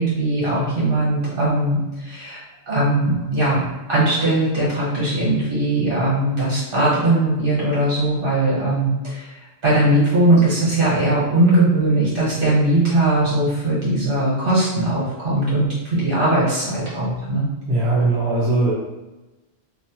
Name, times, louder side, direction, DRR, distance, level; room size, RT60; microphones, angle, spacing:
voice 1, 0.0-2.4 2.7-3.6 3.9-9.3 9.6-17.5, right 1 dB, 60° right, -7 dB, 1.4 m, -19 dB
voice 2, 17.7-18.7, right 2 dB, 75° right, -4 dB, 1.0 m, -19 dB
2.7 x 2.1 x 2.9 m, 1.1 s
omnidirectional pair, 1.1 m